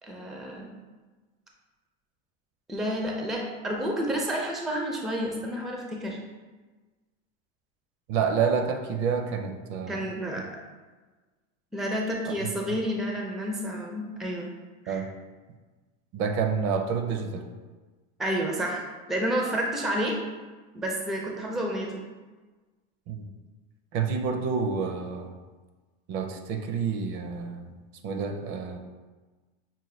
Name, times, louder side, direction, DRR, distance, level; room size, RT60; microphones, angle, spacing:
voice 1, 0.0-0.7 2.7-6.2 9.9-10.4 11.7-14.5 14.8-15.0 18.2-20.2 20.7-22.1, equal, ahead, 0 dB, 0.4 m, -30 dB
voice 2, 8.1-10.0 14.9-15.1 16.1-17.5 23.1-23.2 23.9-25.3 26.1-27.7 28.0-28.8, right 6 dB, 60° right, 5 dB, 0.6 m, -28 dB
5.6 x 2.1 x 3.2 m, 1.3 s
supercardioid pair, 125°, 31 cm